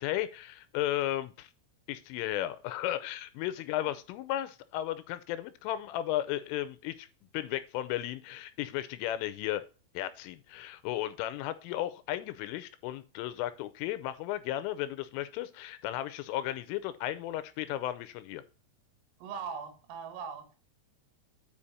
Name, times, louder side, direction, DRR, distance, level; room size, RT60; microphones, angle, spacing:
voice 1, 0.0-1.5 1.9-7.1 7.3-9.6 9.9-18.4, left 13 dB, 85° left, 3.0 m, -34 dB
voice 2, 19.2-20.6, right 6 dB, 80° right, 4.2 m, -40 dB
8.7 x 5.1 x 4.1 m
omnidirectional pair, 5.9 m